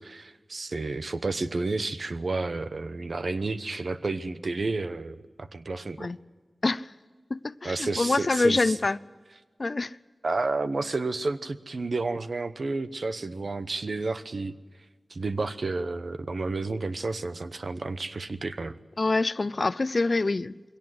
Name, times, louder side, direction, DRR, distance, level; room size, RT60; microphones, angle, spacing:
voice 1, 0.0-6.1 7.6-8.8 10.2-14.5 15.1-18.7, right 3 dB, 70° right, 1.0 m, -31 dB
voice 2, 7.3-9.0 9.6-10.0 19.0-20.8, left 3 dB, 55° left, 0.5 m, -26 dB
22.0 x 17.5 x 7.8 m
cardioid pair, 40°, 0 cm